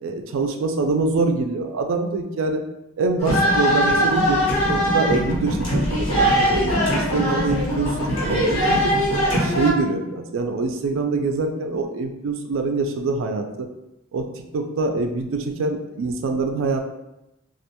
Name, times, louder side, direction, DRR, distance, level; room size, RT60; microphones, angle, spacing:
voice 1, 0.0-2.6 3.0-4.4 4.7-8.9 9.3-13.7 14.1-14.3 14.5-16.8, right 3 dB, 80° right, 5 dB, 0.3 m, -25 dB
sound 1, 3.2-9.7, equal, 90° left, 1.1 m, -21 dB
2.4 x 2.1 x 2.8 m, 0.90 s
head